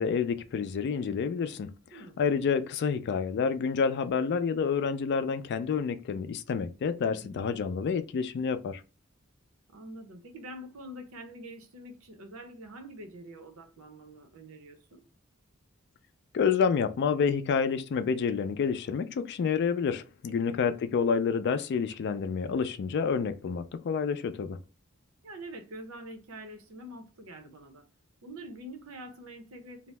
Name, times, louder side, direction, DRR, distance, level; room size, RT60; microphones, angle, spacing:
voice 1, 0.0-1.7 2.2-8.8 16.3-24.6, left 6 dB, 55° left, 0.3 m, -28 dB
voice 2, 9.7-15.0 20.3-20.6 25.2-27.8 28.2-29.9, right 1 dB, 80° right, 0.7 m, -45 dB
2.7 x 2.0 x 3.2 m
head